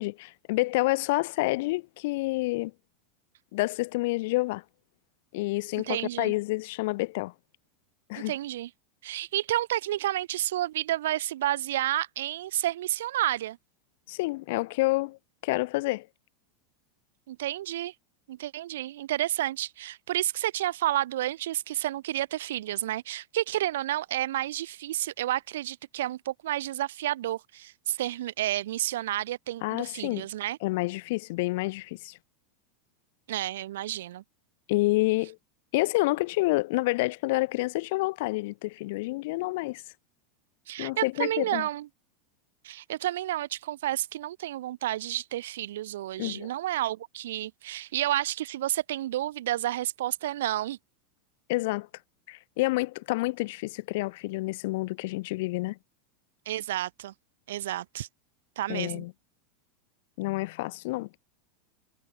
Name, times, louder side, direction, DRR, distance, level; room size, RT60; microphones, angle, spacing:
voice 1, 0.0-2.7 3.5-4.6 5.3-7.3 8.1-8.3 14.1-15.2 15.4-16.1 29.6-30.3 30.6-32.2 34.7-35.4 35.7-39.8 40.8-41.7 46.2-46.5 51.5-51.9 52.3-55.8 58.7-59.1 60.2-61.1, left 21 dB, 55° left, 3.4 m, -28 dB
voice 2, 5.8-6.3 8.2-8.7 9.0-13.6 17.3-17.9 18.3-30.6 33.3-34.2 40.7-41.9 42.6-50.8 56.4-57.1 57.5-58.1 58.5-59.0, right 14 dB, 80° right, 7.0 m, -30 dB
supercardioid pair, 170°, 0 cm